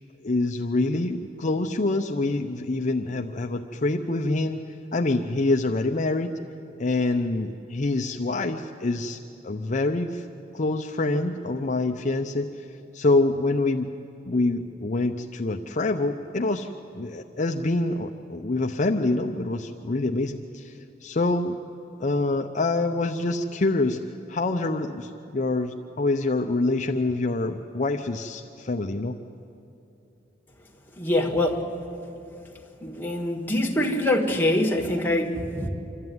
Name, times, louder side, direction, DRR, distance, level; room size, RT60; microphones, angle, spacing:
voice 1, 0.2-4.6 4.9-6.3 6.8-9.2 9.4-10.3 10.5-12.7 12.9-13.9 14.3-21.5 22.0-24.0 24.3-29.2, left 2 dB, 40° left, 4 dB, 0.6 m, -26 dB
voice 2, 31.0-31.7 32.8-35.7, left 1 dB, 10° left, 0 dB, 1.8 m, -24 dB
26.5 x 12.5 x 9.4 m, 2.8 s
head